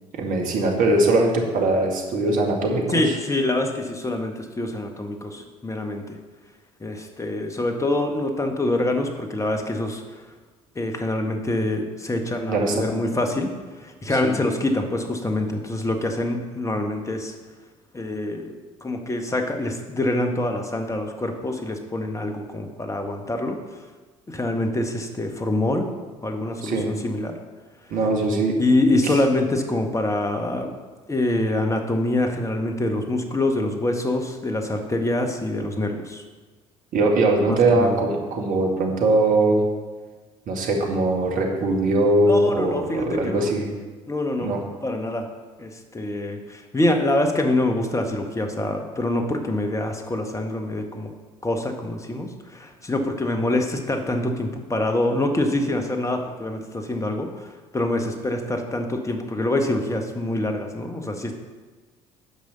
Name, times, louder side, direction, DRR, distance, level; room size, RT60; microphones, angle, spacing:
voice 1, 0.1-3.2 12.5-12.9 14.2-14.3 26.6-26.9 27.9-28.6 29.0-29.2 36.9-39.6 40.5-43.7 44.4-44.6, right 2 dB, 55° right, 1 dB, 2.1 m, -21 dB
voice 2, 2.9-6.2 6.8-10.0 10.7-13.5 13.8-17.3 17.9-23.6 24.3-25.9 26.2-27.4 28.6-30.7 31.1-36.2 37.5-38.0 42.2-43.5 44.1-44.5 44.8-45.3 45.6-51.1 51.4-61.3, left 1 dB, 20° left, 4 dB, 1.6 m, -25 dB
9.8 x 5.5 x 6.8 m, 1.3 s
hypercardioid pair, 60°, 16 cm